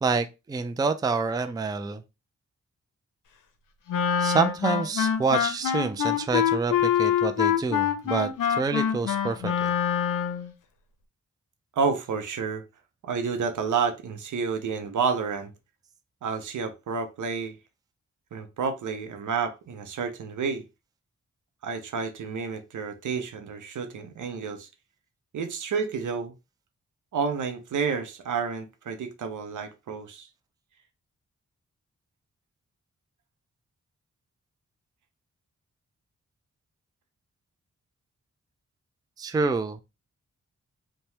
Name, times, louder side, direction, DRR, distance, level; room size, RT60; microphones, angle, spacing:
voice 1, 0.0-2.0 4.2-9.7 39.2-39.8, right 4 dB, 15° right, 0.3 m, -27 dB
Wind instrument woodwind instrument, 3.9-10.5, left 9 dB, 85° left, 0.6 m, -25 dB
voice 2, 11.8-12.6 13.0-15.5 16.2-17.6 18.3-20.6 21.6-24.7 25.3-26.3 27.1-30.3, right 5 dB, 75° right, 0.6 m, -30 dB
2.7 x 2.2 x 3.2 m
cardioid pair, 60°, 31 cm